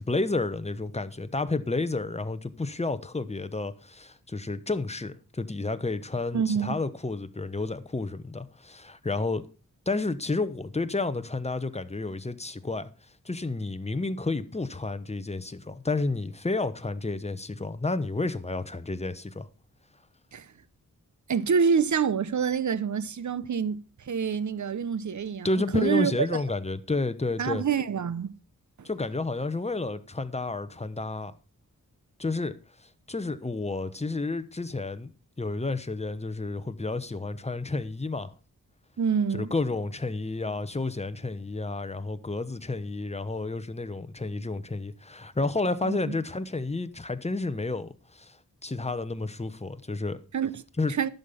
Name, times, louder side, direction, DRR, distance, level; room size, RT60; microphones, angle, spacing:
voice 1, 0.0-9.5 9.9-12.9 13.2-19.5 25.4-27.6 28.8-31.3 32.2-32.5 32.8-35.1 35.4-38.3 39.3-48.4 48.6-50.2 50.8-50.9, left 3 dB, 20° left, 1.1 m, -31 dB
voice 2, 6.3-6.8 20.3-20.5 21.3-26.3 27.4-28.3 28.8-28.9 39.0-39.5 45.8-46.1 50.3-50.6 50.9-51.1, right 6 dB, 60° right, 0.8 m, -27 dB
11.0 x 6.9 x 5.7 m
cardioid pair, 60°, 33 cm